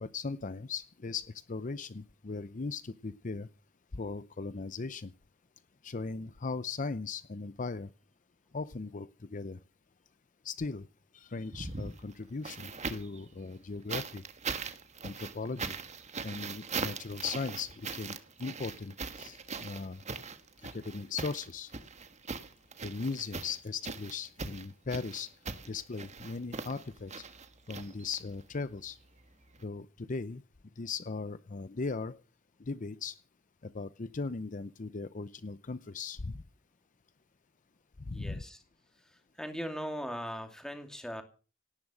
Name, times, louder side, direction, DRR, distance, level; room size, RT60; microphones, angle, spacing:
voice 1, 0.0-3.5 3.9-5.1 5.8-7.9 8.5-9.6 10.4-10.9 11.1-14.2 15.0-15.8 16.2-20.0 20.7-21.7 22.8-25.3 25.7-27.2 27.7-29.0 29.6-30.4 30.8-32.2 32.6-33.2 33.6-36.4 38.0-38.4, left 4 dB, 40° left, 14 dB, 0.6 m, -38 dB
sound 1, 11.4-13.2 13.9-28.4 29.5-29.6, right 4 dB, 35° right, 1.4 m, -40 dB
voice 2, 38.1-38.6 39.0-41.2, equal, 5° left, 6 dB, 2.5 m, -39 dB
18.0 x 10.5 x 6.2 m, 0.37 s
head